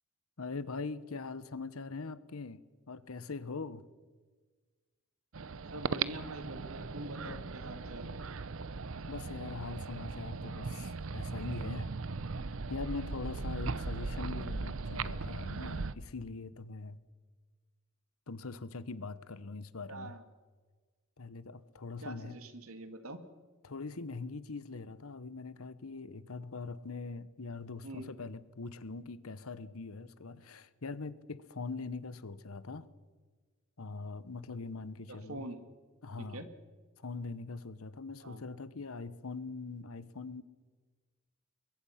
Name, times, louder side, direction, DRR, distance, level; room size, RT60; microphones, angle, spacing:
voice 1, 0.4-2.6 2.9-3.9 7.2-7.4 9.1-11.9 12.7-17.0 18.3-20.1 21.2-22.4 23.6-32.9 33.8-35.4 36.0-36.4 37.0-40.4, left 4 dB, 80° left, 16 dB, 1.0 m, -42 dB
sound 1, 5.3-15.9, right 4 dB, 65° right, 0.7 m, -38 dB
voice 2, 5.7-8.1 19.9-20.2 22.0-23.2 27.8-28.1 35.1-35.6 36.2-36.5 38.2-38.5, right 1 dB, 85° right, 9 dB, 2.0 m, -45 dB
23.5 x 22.0 x 5.8 m, 1.4 s
head